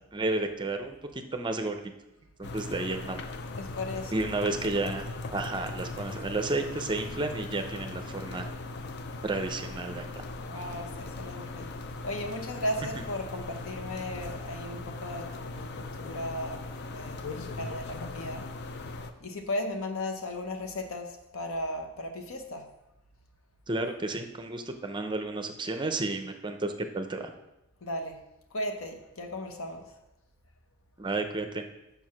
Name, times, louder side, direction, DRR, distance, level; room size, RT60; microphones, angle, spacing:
voice 1, 0.1-1.8 2.4-3.3 4.1-8.5 9.2-10.2 23.7-27.3 31.0-31.7, right 2 dB, 20° right, 6 dB, 0.6 m, -32 dB
sound 1, 2.4-19.1, left 3 dB, 50° left, 0.4 m, -39 dB
voice 2, 3.6-4.3 10.4-11.7 12.0-16.6 16.9-18.5 19.2-22.7 27.8-28.2 28.5-30.0, left 1 dB, 70° left, 5 dB, 0.9 m, -36 dB
5.2 x 4.7 x 5.8 m, 0.93 s
head